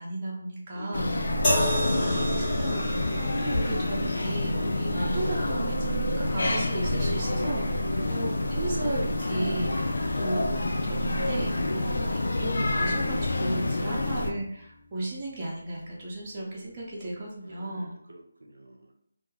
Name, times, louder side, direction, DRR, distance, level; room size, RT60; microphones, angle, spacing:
voice 1, 0.0-1.3 1.9-10.4 10.8-17.9, right 1 dB, 25° right, -5 dB, 0.6 m, -34 dB
voice 2, 0.7-1.4 7.8-8.3 11.8-12.1 13.9-14.1 17.4-18.9, right 1 dB, 80° right, 2 dB, 0.6 m, -46 dB
sound 1, 0.9-14.3, left 1 dB, 70° left, 0.3 m, -28 dB
sound 2, 1.4-14.8 15.7-15.9, left 1 dB, 20° left, 1.1 m, -35 dB
2.2 x 2.2 x 3.2 m, 0.70 s
figure-of-eight pair, 160°, 0 cm